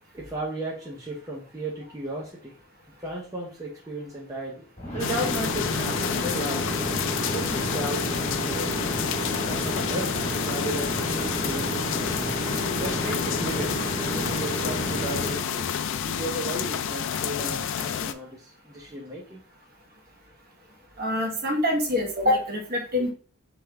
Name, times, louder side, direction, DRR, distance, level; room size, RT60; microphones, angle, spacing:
voice 1, 0.1-2.5 3.0-4.7 4.9-6.7 7.3-8.8 9.5-12.1 12.8-15.7 16.0-19.4, right 1 dB, 15° right, -4 dB, 0.7 m, -35 dB
sound 1, 4.8-15.4, right 1 dB, 30° left, 1.6 m, -31 dB
sound 2, 5.0-18.1, left 8 dB, 55° left, 0.3 m, -29 dB
voice 2, 21.0-23.1, left 1 dB, 45° right, 1 dB, 1.3 m, -25 dB
4.3 x 3.3 x 3.5 m, 0.41 s
head